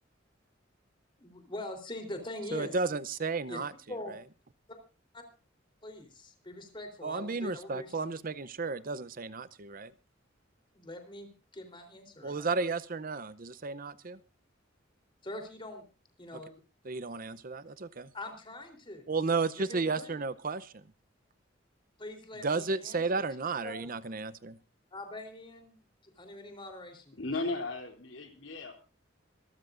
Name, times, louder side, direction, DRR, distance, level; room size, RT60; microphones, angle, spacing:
voice 1, 1.2-2.8 3.5-3.6 3.9-4.2 4.7-4.8 5.1-5.2 5.8-7.9 10.7-12.5 15.2-15.8 16.2-16.6 18.1-19.1 19.6-20.3 22.0-23.3 23.6-23.9 24.9-27.2, left 1 dB, 25° left, 5 dB, 3.7 m, -43 dB
voice 2, 2.5-3.7 7.0-9.9 12.2-14.2 16.8-18.1 19.1-20.8 22.4-24.6, right 4 dB, 45° right, 16 dB, 0.7 m, -33 dB
voice 3, 27.2-28.7, left 2 dB, 85° left, 4 dB, 3.2 m, -35 dB
26.0 x 13.5 x 2.6 m, 0.32 s
head